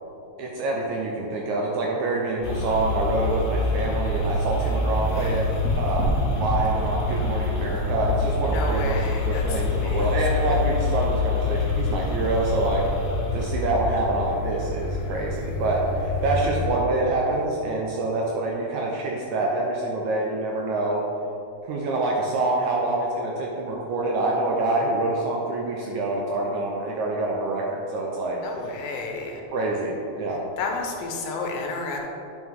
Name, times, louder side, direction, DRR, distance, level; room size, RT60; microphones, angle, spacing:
voice 1, 0.4-5.5 5.8-12.9 13.3-21.0 21.7-28.4 29.5-30.4, right 2 dB, 75° right, -2 dB, 1.8 m, -26 dB
sound 1, 2.4-16.7, left 2 dB, 60° left, 2.0 m, -26 dB
sound 2, 6.6-16.9, left 1 dB, 45° right, 2.1 m, -41 dB
voice 2, 8.5-10.2 28.4-29.4 30.6-32.0, left 3 dB, 85° left, 2 dB, 2.6 m, -31 dB
9.5 x 5.9 x 3.6 m, 2.7 s
omnidirectional pair, 4.1 m